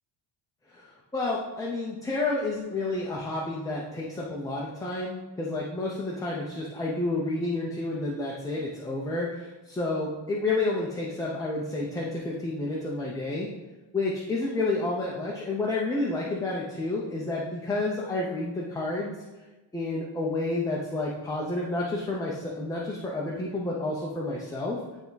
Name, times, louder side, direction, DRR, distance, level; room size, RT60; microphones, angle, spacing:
voice 1, 0.7-13.5 13.9-19.2 19.7-24.8, left 2 dB, 10° left, -4 dB, 0.4 m, -30 dB
9.4 x 3.5 x 3.8 m, 1.1 s
cardioid pair, 180°, 47 cm